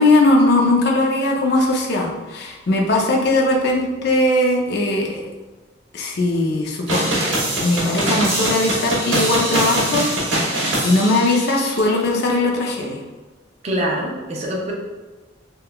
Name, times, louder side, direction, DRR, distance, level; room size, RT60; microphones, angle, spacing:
voice 1, 0.0-5.2 5.9-10.1 10.5-13.0, left 2 dB, 60° left, 0 dB, 0.5 m, -19 dB
sound 1, 6.9-11.8, right 1 dB, 80° right, 0.9 m, -22 dB
voice 2, 13.6-14.7, equal, 35° right, -2 dB, 0.5 m, -24 dB
3.5 x 2.3 x 2.2 m, 1.2 s
head